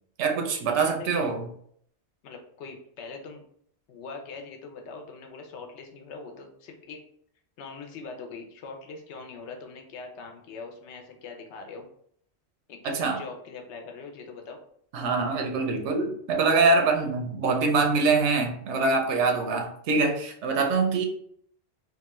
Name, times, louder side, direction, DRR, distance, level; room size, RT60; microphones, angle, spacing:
voice 1, 0.2-1.5 12.8-13.2 14.9-21.1, right 4 dB, 85° right, 3 dB, 0.9 m, -24 dB
voice 2, 0.8-1.3 2.2-3.4 3.9-7.0 7.6-11.9 12.7-14.6, left 4 dB, 85° left, 3 dB, 0.9 m, -42 dB
2.9 x 2.3 x 2.9 m, 0.64 s
omnidirectional pair, 1.1 m